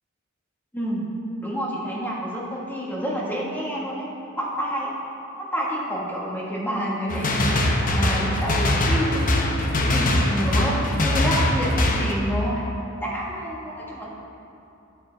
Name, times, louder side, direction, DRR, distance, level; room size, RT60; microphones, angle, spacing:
voice 1, 0.7-1.1 1.4-4.1 4.3-4.9 5.5-7.5 7.9-9.4 9.8-12.6 13.0-14.1, equal, 10° left, -5 dB, 1.6 m, -28 dB
sound 1, 7.1-12.1, left 1 dB, 40° left, 0.8 m, -22 dB
10.5 x 8.8 x 3.5 m, 2.8 s
head